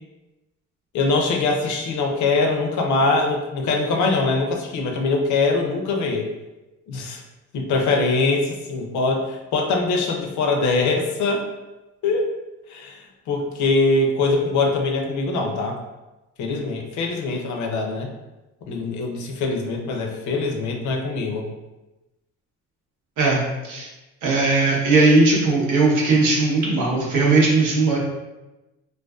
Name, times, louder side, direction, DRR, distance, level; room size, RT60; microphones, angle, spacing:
voice 1, 0.9-6.3 6.9-7.2 7.5-11.4 12.0-12.3 12.7-15.8 16.4-18.1 18.7-21.4, left 3 dB, 70° left, 2 dB, 0.5 m, -22 dB
voice 2, 23.2-23.9 24.2-28.0, right 3 dB, 85° right, -4 dB, 0.8 m, -18 dB
2.4 x 2.2 x 2.3 m, 1.0 s
cardioid pair, 90°, 30 cm